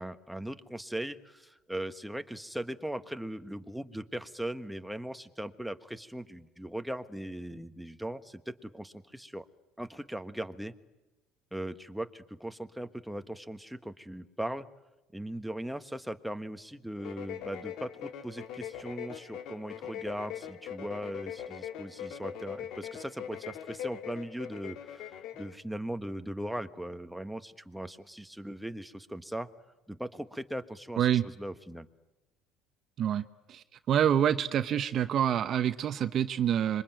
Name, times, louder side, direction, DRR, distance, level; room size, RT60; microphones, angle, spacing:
voice 1, 0.0-9.4 9.8-10.7 11.5-14.7 15.1-29.5 29.9-31.1 31.4-31.9, right 1 dB, ahead, 9 dB, 1.4 m, -39 dB
sound 1, 17.0-25.6, left 9 dB, 65° left, 2.0 m, -41 dB
voice 2, 31.0-31.3 33.0-36.8, right 10 dB, 50° right, 11 dB, 0.9 m, -27 dB
26.0 x 23.0 x 9.2 m, 1.0 s
cardioid pair, 110°, 0 cm